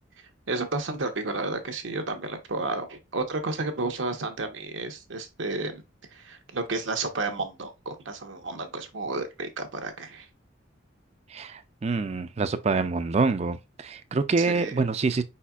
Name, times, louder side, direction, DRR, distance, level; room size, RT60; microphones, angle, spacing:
voice 1, 0.5-5.8 6.1-10.3 14.4-14.8, right 3 dB, 80° right, 0.9 m, -32 dB
voice 2, 11.3-15.2, right 4 dB, 35° right, 0.4 m, -26 dB
5.1 x 4.2 x 2.3 m
head